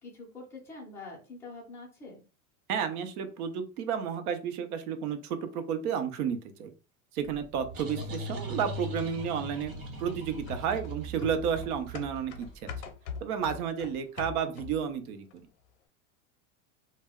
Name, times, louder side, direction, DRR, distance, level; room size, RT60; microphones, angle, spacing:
voice 1, 0.0-2.2, left 3 dB, 5° left, -4 dB, 0.4 m, -45 dB
voice 2, 2.7-6.7 7.1-12.7 13.2-15.3, right 7 dB, 85° right, 8 dB, 0.7 m, -32 dB
sound 1, 7.2-12.8, equal, 60° right, 1.0 m, -40 dB
sound 2, 10.5-14.9 15.3-15.4, left 6 dB, 60° left, 0.6 m, -42 dB
2.2 x 2.1 x 3.4 m, 0.34 s
supercardioid pair, 155°, 43 cm